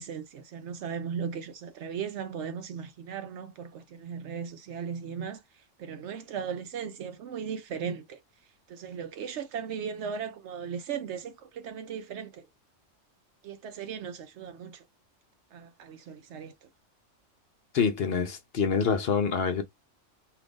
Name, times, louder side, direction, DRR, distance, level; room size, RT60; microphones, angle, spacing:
voice 1, 0.0-5.4 5.8-8.2 8.7-12.5 13.4-14.9 15.5-16.7, right 7 dB, 70° right, 0.8 m, -37 dB
voice 2, 17.7-19.6, left 6 dB, 60° left, 0.7 m, -26 dB
2.7 x 2.5 x 3.5 m
omnidirectional pair, 1.3 m